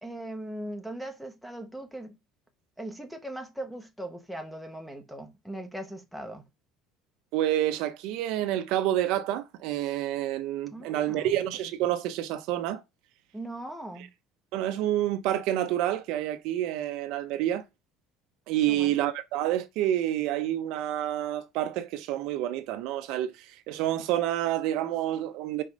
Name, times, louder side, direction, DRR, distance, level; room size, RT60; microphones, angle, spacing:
voice 1, 0.0-2.2 2.8-6.4 10.7-11.3 13.3-14.1 18.7-18.9, right 1 dB, ahead, 1.0 m, -39 dB
voice 2, 7.3-12.8 14.5-17.6 18.5-23.3 23.7-25.6, right 12 dB, 55° right, 0.8 m, -28 dB
5.0 x 4.7 x 5.3 m
cardioid pair, 180°, 0 cm